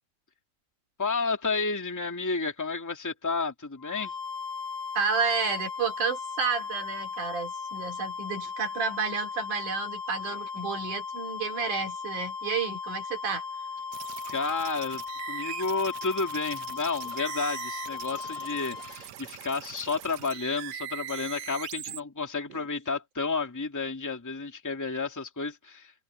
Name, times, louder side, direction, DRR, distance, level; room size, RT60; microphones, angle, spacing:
voice 1, 1.0-4.1 14.2-25.9, left 4 dB, 5° left, 1.4 m, -31 dB
sound 1, 3.8-19.1, left 5 dB, 65° left, 7.8 m, -37 dB
voice 2, 4.9-13.4, right 5 dB, 55° right, 4.7 m, -31 dB
sound 2, 13.9-22.0, right 11 dB, 75° right, 1.6 m, -41 dB
omnidirectional pair, 4.5 m